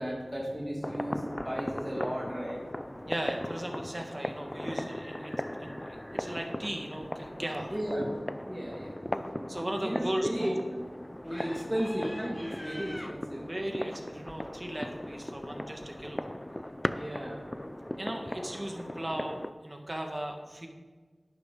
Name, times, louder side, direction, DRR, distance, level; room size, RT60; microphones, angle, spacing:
voice 1, 0.0-2.6 7.7-8.1 8.5-9.3 9.8-10.8 11.2-13.4 16.9-17.4, equal, 15° right, -4 dB, 2.2 m, -34 dB
sound 1, 0.8-19.5, left 1 dB, 20° left, 0.5 m, -38 dB
voice 2, 3.0-7.7 9.5-10.6 13.5-16.2 18.0-20.7, right 1 dB, 35° right, 2 dB, 1.8 m, -37 dB
11.5 x 9.6 x 3.9 m, 1.4 s
wide cardioid pair, 45°, 0 cm